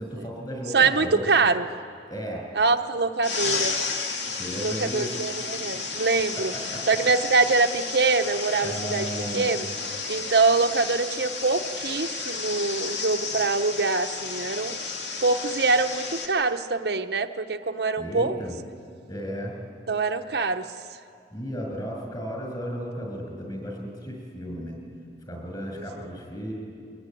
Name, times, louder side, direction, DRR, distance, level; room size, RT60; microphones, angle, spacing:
voice 1, 0.0-1.3 2.1-2.4 4.4-5.1 5.7-5.8 6.5-6.8 8.6-9.5 18.0-18.5 19.1-19.5 21.3-24.8 25.3-26.5, equal, 25° left, 1 dB, 6.5 m, -34 dB
voice 2, 0.7-1.7 2.5-3.8 4.6-6.5 6.9-9.7 10.1-14.8 15.2-18.3 19.9-20.6 25.7-26.1, right 4 dB, 65° right, 6 dB, 0.9 m, -24 dB
sound 1, 3.2-16.3, left 4 dB, 85° left, 2.5 m, -32 dB
23.5 x 20.5 x 10.0 m, 2.4 s
head